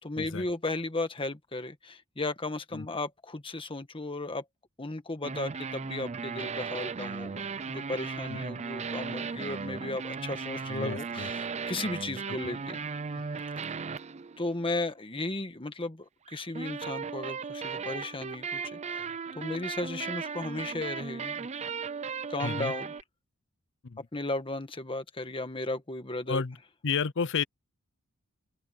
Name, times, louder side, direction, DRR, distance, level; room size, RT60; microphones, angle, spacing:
voice 1, 0.0-4.4 4.8-12.8 14.4-19.0 19.3-21.5 22.3-22.9 24.1-26.4, left 2 dB, 25° left, 1.6 m, -35 dB
sound 1, 5.2-14.7 16.3-23.0, right 5 dB, 30° right, 0.5 m, -36 dB
voice 2, 10.7-11.3 22.4-22.7 23.8-24.0 26.3-26.6 26.8-27.4, left 5 dB, 60° left, 0.7 m, -31 dB
open air
head